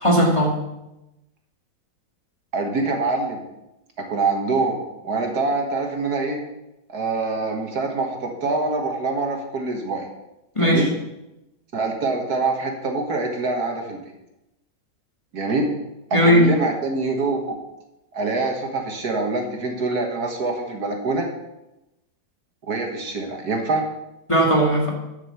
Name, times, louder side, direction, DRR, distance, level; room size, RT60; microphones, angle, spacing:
voice 1, 0.0-0.6 10.6-10.9 16.1-16.4 24.3-24.9, equal, 15° left, -2 dB, 2.0 m, -17 dB
voice 2, 2.5-3.4 4.0-6.4 6.9-10.1 10.6-10.9 11.7-14.0 15.3-15.7 16.1-17.6 18.1-21.3 22.7-23.8, right 3 dB, 60° right, 2 dB, 1.9 m, -25 dB
11.0 x 6.1 x 7.0 m, 0.94 s
omnidirectional pair, 1.9 m